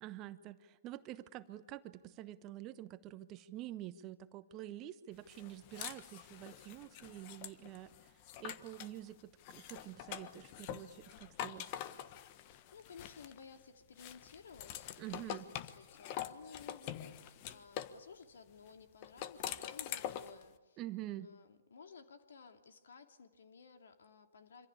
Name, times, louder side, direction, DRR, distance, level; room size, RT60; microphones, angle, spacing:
voice 1, 0.0-8.1 8.4-11.7 15.0-15.5 20.8-21.3, right 14 dB, 25° right, 12 dB, 1.1 m, -47 dB
sound 1, 5.3-9.0 9.4-13.6 14.0-18.0 19.0-20.4, left 11 dB, 35° left, 1.3 m, -45 dB
voice 2, 12.4-20.8 21.1-24.7, left 5 dB, 60° left, 6 dB, 2.7 m, -56 dB
26.5 x 26.0 x 8.7 m, 1.2 s
figure-of-eight pair, 120°, 0 cm